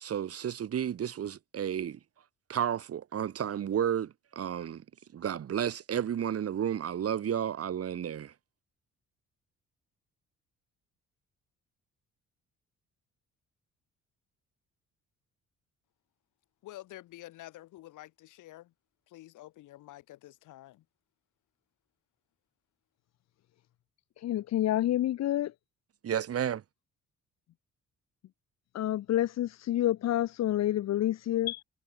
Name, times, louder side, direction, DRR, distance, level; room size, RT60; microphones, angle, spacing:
voice 1, 0.0-2.0 2.5-4.8 5.1-8.3 26.0-26.6, right 9 dB, 50° right, 1.3 m, -32 dB
voice 2, 16.6-18.7 19.1-20.8, left 15 dB, 90° left, 3.4 m, -49 dB
voice 3, 24.2-25.5 28.7-31.6, left 13 dB, 60° left, 0.7 m, -28 dB
cardioid pair, 90°, 30 cm